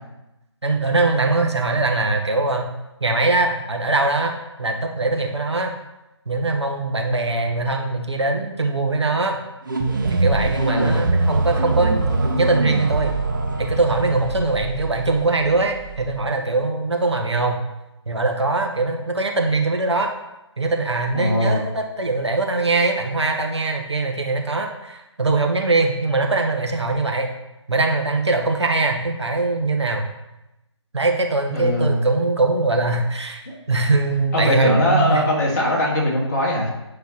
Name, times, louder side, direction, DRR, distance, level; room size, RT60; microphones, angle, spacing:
voice 1, 0.6-2.7 3.0-5.7 6.3-9.4 10.1-13.2 13.6-17.6 18.1-20.1 20.6-27.3 27.7-30.1 30.9-33.4 33.7-35.2, right 3 dB, 65° right, 2 dB, 1.2 m, -22 dB
sound 1, 9.6-16.3, right 3 dB, 40° right, 1.0 m, -24 dB
voice 2, 10.7-11.0 21.1-21.6 31.5-32.1 33.5-33.6 34.3-36.7, left 1 dB, 35° left, -4 dB, 2.1 m, -21 dB
9.7 x 5.6 x 2.9 m, 0.94 s
figure-of-eight pair, 150°, 16 cm